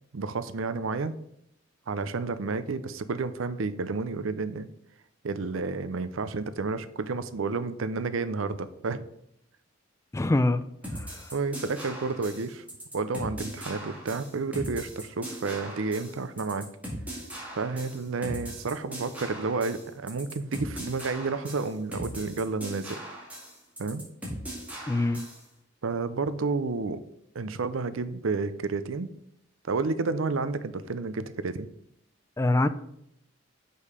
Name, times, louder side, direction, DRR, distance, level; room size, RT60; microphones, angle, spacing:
voice 1, 0.1-1.2 1.9-4.7 5.2-9.1 11.3-12.6 12.9-16.7 17.5-23.0 23.8-24.0 25.8-27.0 27.3-29.1 29.7-31.7, right 4 dB, 80° right, 13 dB, 0.6 m, -31 dB
voice 2, 10.1-10.6 10.9-11.3 24.9-25.2 32.4-32.7, left 2 dB, 15° left, 12 dB, 0.3 m, -24 dB
sound 1, 10.8-25.4, equal, 5° right, 2.1 m, -39 dB
6.5 x 5.3 x 5.0 m, 0.75 s
head